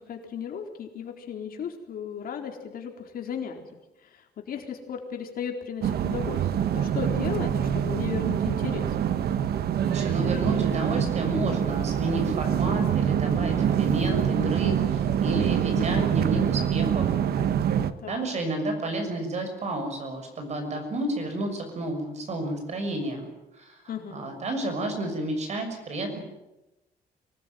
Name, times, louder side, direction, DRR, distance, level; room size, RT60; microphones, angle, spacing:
voice 1, 0.0-3.6 4.1-6.5 6.7-8.9 15.8-16.1 18.0-18.3 23.9-24.3, left 7 dB, 60° left, 3 dB, 4.1 m, -35 dB
sound 1, 5.8-17.9, right 9 dB, 70° right, 1.3 m, -25 dB
voice 2, 9.9-17.1 18.1-23.3 23.6-23.8 24.1-26.2, right 1 dB, 45° right, 5 dB, 6.4 m, -31 dB
25.0 x 19.0 x 9.3 m, 0.97 s
cardioid pair, 165°, 17 cm